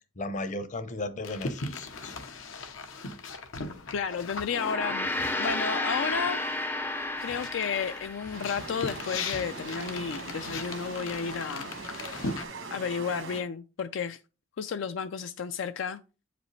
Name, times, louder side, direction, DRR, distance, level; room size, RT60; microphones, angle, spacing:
voice 1, 0.2-2.2, left 2 dB, 40° left, 0.7 m, -35 dB
sound 1, 1.2-6.7 7.0-12.4, left 3 dB, 85° left, 0.9 m, -39 dB
voice 2, 3.9-6.4 6.9-11.7 12.7-14.2 14.6-16.0, left 6 dB, 70° left, 0.4 m, -32 dB
Gong, 4.5-9.1, left 2 dB, 10° left, 0.4 m, -32 dB
sound 2, 8.3-13.4, right 4 dB, 80° right, 1.2 m, -41 dB
8.1 x 5.1 x 3.2 m
head